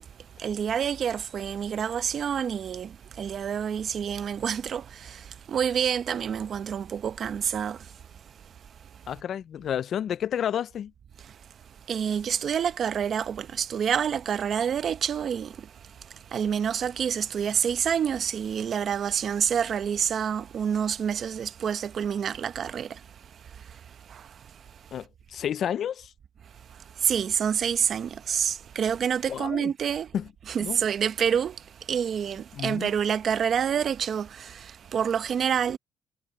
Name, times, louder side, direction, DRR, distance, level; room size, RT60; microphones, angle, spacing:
voice 1, 0.4-7.9 8.2-8.3 11.2-11.4 11.9-24.6 26.7-30.1 30.5-35.8, right 8 dB, 60° right, 0.8 m, -28 dB
voice 2, 9.1-10.9 24.9-26.1 29.3-29.7 30.1-30.3 30.6-30.8 32.5-32.9, left 9 dB, 65° left, 0.4 m, -30 dB
cardioid pair, 90°, 0 cm